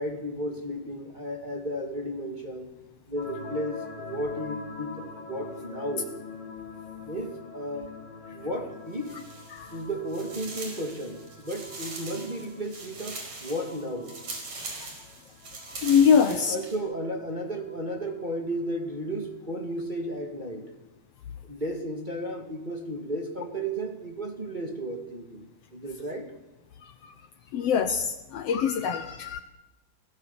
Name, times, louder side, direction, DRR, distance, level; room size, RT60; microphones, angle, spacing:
voice 1, 0.0-2.7 3.1-6.1 7.0-7.9 8.3-9.1 9.7-14.2 16.3-20.7 21.4-26.3, right 1 dB, 15° right, 2 dB, 2.0 m, -34 dB
sound 1, 3.2-19.7, left 5 dB, 35° left, 4.6 m, -45 dB
sound 2, 8.9-9.8 10.1-16.8, right 3 dB, 75° right, 6.2 m, -41 dB
voice 2, 15.8-16.6 27.5-29.4, left 7 dB, 65° left, 9 dB, 1.8 m, -23 dB
29.0 x 17.5 x 7.1 m, 1.0 s
omnidirectional pair, 3.3 m